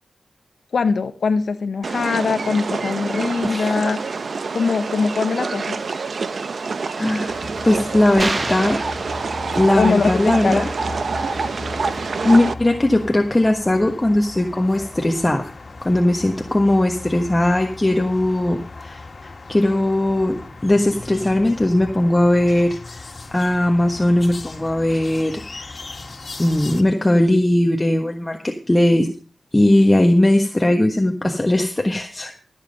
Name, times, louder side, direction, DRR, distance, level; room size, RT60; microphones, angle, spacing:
voice 1, 0.7-4.0 4.5-5.8 9.8-10.6, left 4 dB, 80° left, 9 dB, 0.9 m, -22 dB
sound 1, 1.8-12.5, right 4 dB, 65° right, 0.7 m, -26 dB
voice 2, 3.4-3.7 6.9-8.8 9.6-10.7 12.2-15.5 15.8-19.0 19.5-25.7 26.4-29.1 29.5-32.4, left 1 dB, 20° left, 3 dB, 1.4 m, -18 dB
sound 2, 7.3-26.8, left 3 dB, 50° left, 1.9 m, -37 dB
sound 3, 8.2-9.9, right 2 dB, 40° right, 1.0 m, -28 dB
15.0 x 7.4 x 5.3 m, 0.37 s
cardioid pair, 60°, 0 cm